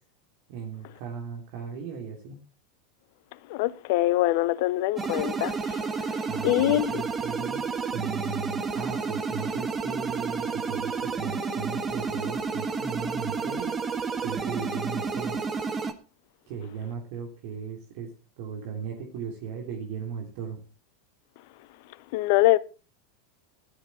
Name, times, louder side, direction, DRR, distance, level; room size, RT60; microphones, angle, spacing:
voice 1, 0.5-2.4 6.3-7.6 7.9-13.7 14.2-15.4 16.5-18.1 18.4-20.6, right 6 dB, 60° right, 3.0 m, -37 dB
voice 2, 3.5-5.6 6.4-7.0 22.1-22.6, left 17 dB, 55° left, 0.8 m, -23 dB
Engine revving chiptune, 5.0-15.9, right 4 dB, 20° right, 1.6 m, -30 dB
13.0 x 12.5 x 4.5 m
figure-of-eight pair, 85°, 0 cm